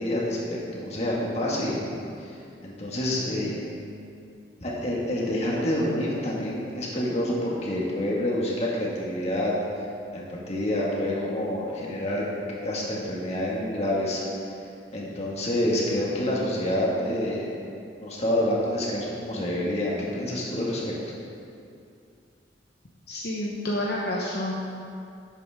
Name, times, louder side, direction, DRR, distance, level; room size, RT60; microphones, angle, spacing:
voice 1, 0.0-3.6 4.6-9.5 10.1-12.2 12.6-14.2 14.9-17.5 18.0-20.8, left 1 dB, 35° left, -5 dB, 1.9 m, -28 dB
voice 2, 23.1-24.8, left 1 dB, 55° left, -4 dB, 1.0 m, -29 dB
11.5 x 8.6 x 3.7 m, 2.5 s
head